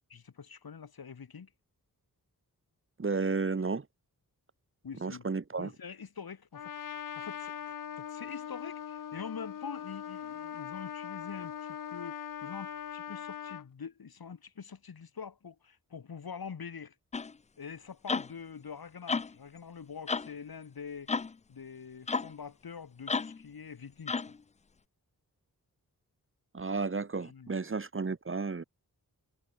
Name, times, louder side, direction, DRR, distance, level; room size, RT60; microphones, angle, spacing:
voice 1, 0.1-1.5 4.8-5.2 5.6-6.7 7.2-16.9 17.6-21.2 21.5-24.4 27.2-27.6, left 6 dB, 85° left, 5.3 m, -45 dB
voice 2, 3.0-3.8 5.0-5.7 26.5-28.6, right 4 dB, 35° right, 1.3 m, -32 dB
Trumpet, 6.5-13.7, left 9 dB, 60° left, 0.7 m, -41 dB
sound 1, 17.1-17.3 18.1-18.3 19.1-19.3 20.1-20.3 21.1-21.3 22.1-22.3 23.1-23.4 24.1-24.4, left 4 dB, 20° left, 0.3 m, -32 dB
wide cardioid pair, 95°, 36 cm